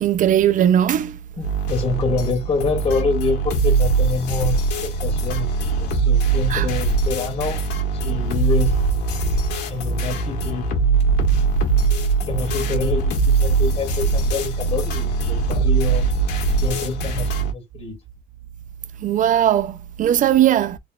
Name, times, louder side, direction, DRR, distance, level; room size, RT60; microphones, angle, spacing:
voice 1, 0.0-1.2 6.5-6.7 19.0-20.8, right 11 dB, 50° right, 0.5 m, -18 dB
sound 1, 1.4-17.5, right 4 dB, 80° left, 1.9 m, -21 dB
voice 2, 1.4-5.5 5.8-7.6 8.0-8.7 9.7-10.7 12.3-16.1 16.6-18.0, left 4 dB, 35° left, 2.5 m, -26 dB
4.2 x 3.9 x 2.4 m
cardioid pair, 110°, 17 cm